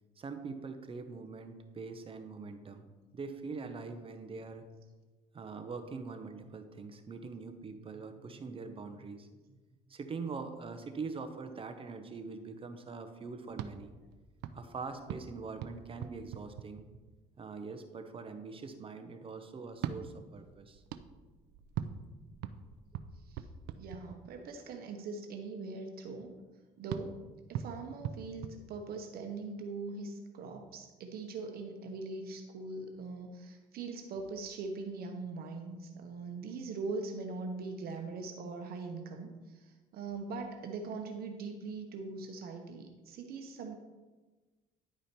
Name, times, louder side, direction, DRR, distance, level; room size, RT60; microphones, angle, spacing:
voice 1, 0.2-2.8 3.1-4.6 5.3-9.3 9.9-13.9 14.5-16.8 17.4-20.8, right 4 dB, 30° right, 7 dB, 0.9 m, -43 dB
sound 1, 13.5-17.3 19.7-24.6 26.9-29.3, right 9 dB, 85° right, 0.5 m, -43 dB
voice 2, 23.8-26.3 26.8-27.2 27.5-43.8, right 3 dB, 65° right, 3 dB, 1.0 m, -41 dB
10.5 x 5.0 x 4.3 m, 1.2 s
cardioid pair, 110°, 17 cm